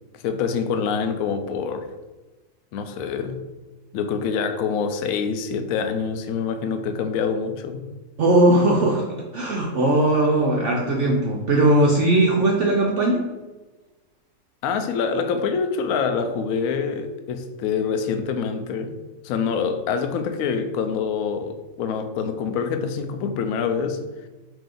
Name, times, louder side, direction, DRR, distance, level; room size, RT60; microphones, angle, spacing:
voice 1, 0.1-1.9 2.7-3.4 3.9-7.9 14.6-19.0 19.2-24.0, left 6 dB, 70° left, 0.8 m, -26 dB
voice 2, 8.2-9.1 9.3-13.2, right 1 dB, 75° right, 0.6 m, -19 dB
5.0 x 2.7 x 3.8 m
omnidirectional pair, 1.8 m